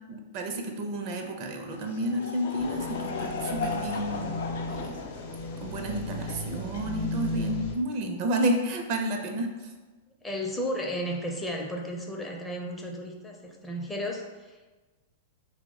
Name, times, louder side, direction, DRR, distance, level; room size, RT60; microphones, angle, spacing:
voice 1, 0.1-4.4 4.7-5.0 5.6-9.7, right 1 dB, 50° right, 3 dB, 0.4 m, -31 dB
Laughter / Crowd, 1.7-7.4, left 4 dB, 70° left, 0.3 m, -37 dB
sound 1, 2.6-7.8, left 2 dB, 50° left, 0.7 m, -35 dB
voice 2, 10.2-14.8, equal, 10° left, 0 dB, 0.5 m, -34 dB
2.9 x 2.0 x 3.6 m, 1.2 s
hypercardioid pair, 115°, 0 cm